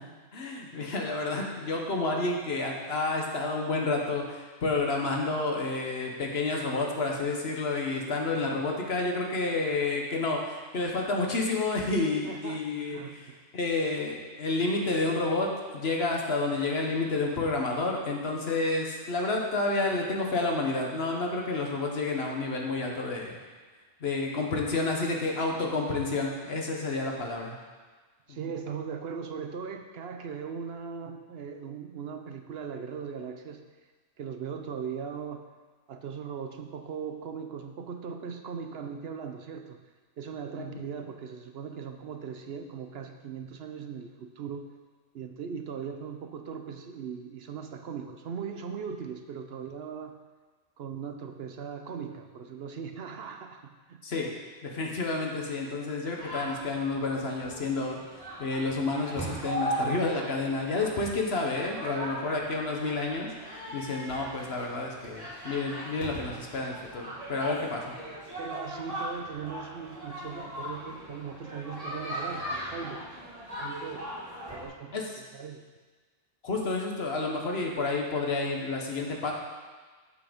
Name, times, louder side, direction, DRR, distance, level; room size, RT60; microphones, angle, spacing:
voice 1, 0.0-13.3 13.5-23.4 24.0-27.6 28.3-28.4 54.0-54.3 54.6-58.0 58.4-63.3 63.7-68.0 74.9-75.2 76.4-79.3, left 3 dB, 65° left, 0 dB, 1.5 m, -30 dB
voice 2, 12.2-13.4 28.3-33.6 34.2-35.5 35.9-39.8 40.2-44.7 45.1-50.2 50.8-54.0 68.4-73.2 73.6-74.1 74.5-75.6, right 6 dB, 65° right, 6 dB, 0.9 m, -39 dB
sound 1, 56.2-74.7, equal, 35° right, 2.3 m, -39 dB
7.6 x 7.0 x 5.2 m, 1.4 s
omnidirectional pair, 1.1 m